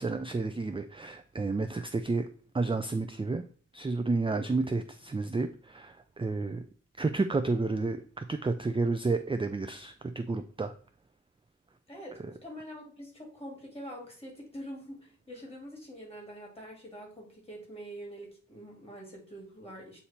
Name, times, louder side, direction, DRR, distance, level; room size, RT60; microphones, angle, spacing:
voice 1, 0.0-2.3 2.5-3.4 3.7-6.6 7.0-10.7, right 3 dB, 20° right, 8 dB, 0.4 m, -31 dB
voice 2, 11.9-20.0, equal, 20° left, -1 dB, 2.4 m, -45 dB
8.1 x 2.8 x 4.3 m, 0.44 s
wide cardioid pair, 75°, 30 cm